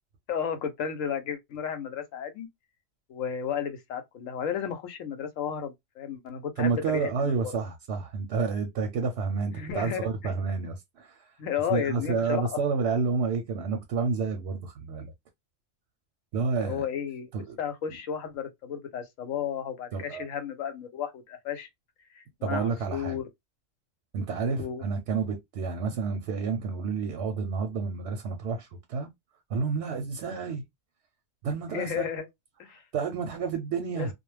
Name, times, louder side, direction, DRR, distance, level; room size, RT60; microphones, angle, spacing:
voice 1, 0.3-2.5 3.1-7.3 9.5-10.3 11.4-12.4 16.6-17.3 17.6-21.7 22.1-23.2 24.6-24.8 31.7-32.3 32.6-32.8 34.0-34.1, left 8 dB, 75° left, 1.0 m, -33 dB
voice 2, 6.6-11.4 11.7-15.1 16.3-16.8 17.3-17.6 19.9-20.2 22.4-23.2 24.1-29.1 29.5-30.6 31.4-32.1 32.7-34.1, right 5 dB, 65° right, 0.7 m, -30 dB
2.3 x 2.0 x 3.1 m
omnidirectional pair, 1.4 m